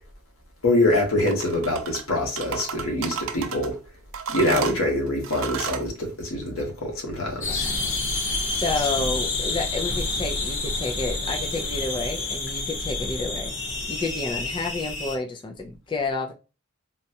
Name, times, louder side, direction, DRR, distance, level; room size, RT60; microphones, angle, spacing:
voice 1, 0.6-3.8 4.3-7.7, left 1 dB, 90° left, 1.2 m, -24 dB
sound 1, 1.2-2.0 2.4-3.7 4.1-5.9, right 7 dB, 75° right, 0.4 m, -32 dB
voice 2, 4.4-4.8 7.5-16.3, left 3 dB, 25° left, 0.3 m, -30 dB
sound 2, 7.4-15.2, left 3 dB, 65° left, 1.0 m, -28 dB
4.0 x 2.3 x 2.7 m
head